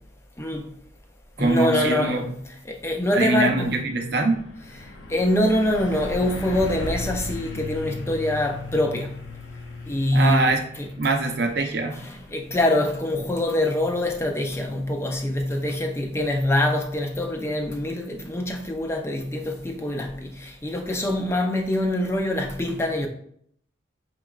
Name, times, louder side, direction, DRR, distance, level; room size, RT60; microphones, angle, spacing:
voice 1, 0.4-0.7 1.4-3.7 4.8-9.2 9.9-10.9 11.9-23.1, left 1 dB, 15° left, 0.4 m, -24 dB
voice 2, 1.4-2.2 3.1-4.4 10.1-10.6 11.0-12.0, right 3 dB, 55° right, 0.5 m, -23 dB
Truck, 2.6-2.7 3.1-15.6, left 2 dB, 75° left, 0.6 m, -38 dB
5.4 x 3.0 x 2.3 m
head